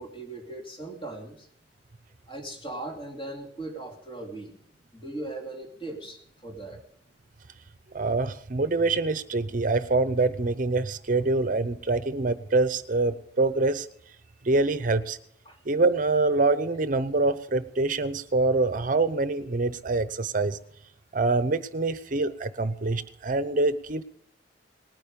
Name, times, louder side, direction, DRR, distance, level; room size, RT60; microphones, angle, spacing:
voice 1, 0.0-1.5 2.3-4.5 4.9-6.8 15.4-15.6, right 2 dB, 30° left, 0 dB, 2.9 m, -38 dB
voice 2, 7.9-13.9 14.4-15.2 15.7-20.6 21.1-24.0, right 3 dB, 50° right, 14 dB, 0.7 m, -25 dB
19.5 x 9.2 x 5.3 m, 0.62 s
head